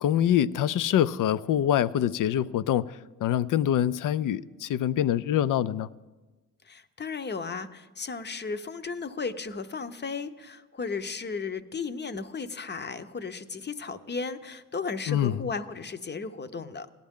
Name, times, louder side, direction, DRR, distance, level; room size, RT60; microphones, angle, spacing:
voice 1, 0.0-2.9 3.2-5.9 15.1-15.4, left 10 dB, 65° left, 17 dB, 0.5 m, -25 dB
voice 2, 6.6-16.9, left 4 dB, 30° left, 10 dB, 0.8 m, -35 dB
18.0 x 12.0 x 3.6 m, 1.2 s
cardioid pair, 70°, 35 cm